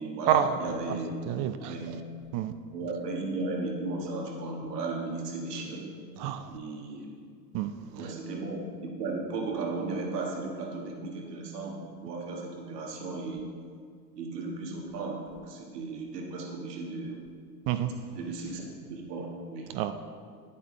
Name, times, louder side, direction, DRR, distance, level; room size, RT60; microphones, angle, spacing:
voice 1, 0.0-1.2 1.6-2.0 2.7-5.9 6.5-7.1 7.9-13.4 14.2-17.2 18.1-19.7, right 3 dB, 80° right, 0 dB, 1.7 m, -35 dB
voice 2, 1.3-1.7 2.3-2.5 6.2-6.4 7.5-7.7 17.7-17.9 19.7-19.9, right 11 dB, 45° right, 9 dB, 0.6 m, -27 dB
10.5 x 8.5 x 3.7 m, 2.1 s
hypercardioid pair, 85°, 47 cm